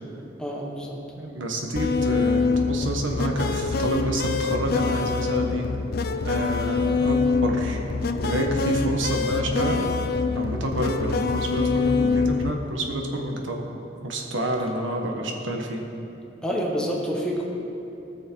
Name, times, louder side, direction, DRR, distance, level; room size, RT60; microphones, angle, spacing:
voice 1, 0.4-1.0 16.4-17.4, equal, 5° left, -2 dB, 1.3 m, -27 dB
voice 2, 1.2-5.6 6.2-7.8 8.2-9.9 10.3-13.7 14.0-15.8, right 1 dB, 85° right, 2 dB, 1.4 m, -28 dB
sound 1, 1.8-12.5, left 4 dB, 55° left, 0.5 m, -25 dB
19.0 x 6.5 x 4.7 m, 2.9 s
head